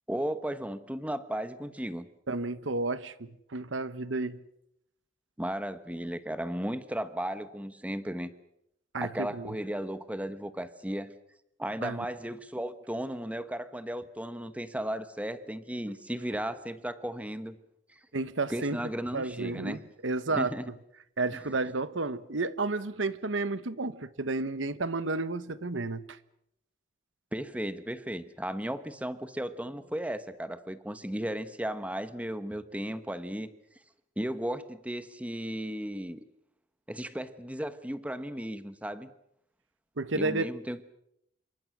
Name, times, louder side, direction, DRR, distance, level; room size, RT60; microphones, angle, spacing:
voice 1, 0.1-2.1 5.4-8.3 9.0-11.1 11.6-17.6 18.5-19.8 20.3-20.7 27.3-33.5 34.2-36.2 36.9-39.1 40.1-40.8, right 1 dB, 5° right, 1.2 m, -35 dB
voice 2, 2.3-4.4 8.9-9.5 11.8-12.0 18.1-18.8 19.1-20.5 21.2-26.2 40.0-40.5, right 3 dB, 80° right, 1.2 m, -32 dB
27.0 x 23.5 x 6.2 m
head